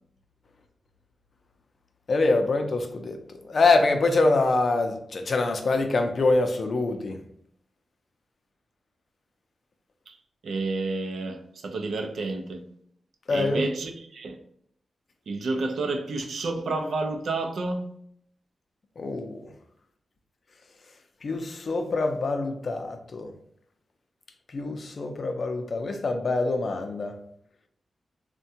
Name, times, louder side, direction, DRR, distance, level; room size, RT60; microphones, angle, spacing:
voice 1, 2.1-3.2 3.4-7.2 13.3-13.6 19.0-19.4 21.2-23.3 24.5-27.2, left 3 dB, 55° left, 0.4 m, -25 dB
voice 2, 10.4-12.6 13.3-14.4 15.3-17.8, right 3 dB, 75° right, 0.4 m, -30 dB
3.4 x 2.2 x 2.7 m
wide cardioid pair, 95°, 0 cm